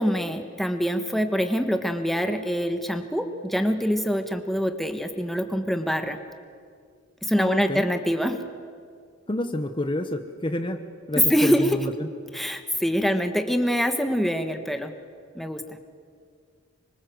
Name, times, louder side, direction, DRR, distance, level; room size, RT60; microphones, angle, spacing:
voice 1, 0.0-6.2 7.2-8.4 11.2-11.8 12.3-14.9 15.3-15.8, equal, ahead, 6 dB, 1.5 m, -24 dB
voice 2, 7.4-7.8 9.3-10.8 11.1-12.1, left 1 dB, 25° left, 7 dB, 1.1 m, -28 dB
26.0 x 24.5 x 7.9 m, 2.1 s
head